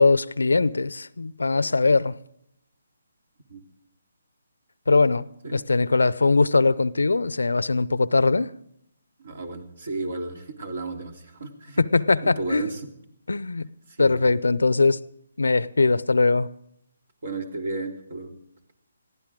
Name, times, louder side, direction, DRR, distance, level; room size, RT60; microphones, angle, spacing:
voice 1, 0.0-2.2 4.9-8.5 11.8-12.6 13.3-13.7 14.0-15.0 15.4-16.5, left 3 dB, 85° left, 0.6 m, -21 dB
voice 2, 9.2-11.8 12.2-12.9 13.9-14.3 17.2-18.3, right 3 dB, 65° right, 3.1 m, -33 dB
21.5 x 15.5 x 3.7 m
hypercardioid pair, 150°, 0 cm